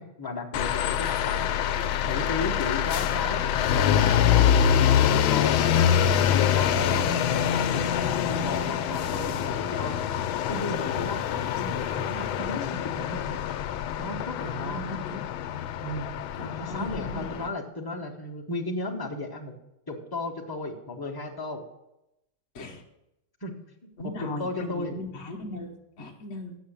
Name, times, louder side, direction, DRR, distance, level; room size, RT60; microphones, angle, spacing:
voice 1, 0.0-1.5 2.0-5.9 6.3-10.0 10.5-13.4 14.0-14.9 15.8-16.1 16.5-19.5 19.9-21.6 23.4-23.5 24.2-25.0, left 2 dB, 20° left, -2 dB, 0.6 m, -34 dB
sound 1, 0.5-17.5, left 9 dB, 85° left, 1.4 m, -25 dB
voice 2, 14.4-15.3 16.4-17.2 22.5-22.8 24.0-26.6, left 1 dB, 50° left, 0 dB, 0.9 m, -37 dB
8.2 x 6.4 x 7.0 m, 0.89 s
omnidirectional pair, 2.2 m